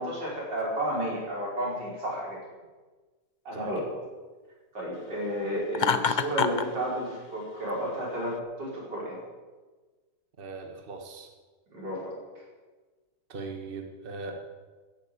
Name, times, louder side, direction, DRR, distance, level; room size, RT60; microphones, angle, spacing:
voice 1, 0.0-2.4 3.5-3.8 4.7-9.2 11.7-12.1, equal, 85° right, -4 dB, 5.7 m, -32 dB
voice 2, 3.5-3.9 10.4-11.3 13.3-14.4, right 3 dB, 35° right, 3 dB, 1.6 m, -40 dB
Laughter, 5.7-6.7, left 6 dB, 75° left, 0.4 m, -25 dB
15.0 x 9.6 x 7.9 m, 1.3 s
omnidirectional pair, 1.9 m